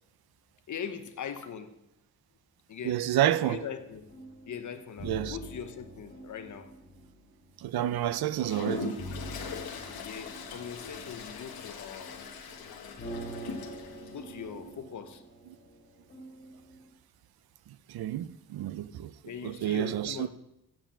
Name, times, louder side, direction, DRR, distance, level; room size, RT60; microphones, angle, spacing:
voice 1, 0.7-1.7 2.7-3.0 3.4-4.1 4.5-6.7 10.0-12.2 14.1-15.2 19.2-20.3, left 7 dB, 55° left, 1.0 m, -41 dB
voice 2, 2.8-3.6 5.0-5.3 7.6-9.0 17.9-19.1 19.4-20.3, right 12 dB, 80° right, 0.6 m, -29 dB
sound 1, 3.7-16.9, equal, 30° left, 2.2 m, -46 dB
Toilet flush, 8.3-14.1, left 5 dB, 80° left, 1.3 m, -40 dB
7.5 x 7.3 x 7.4 m
wide cardioid pair, 155°, 36 cm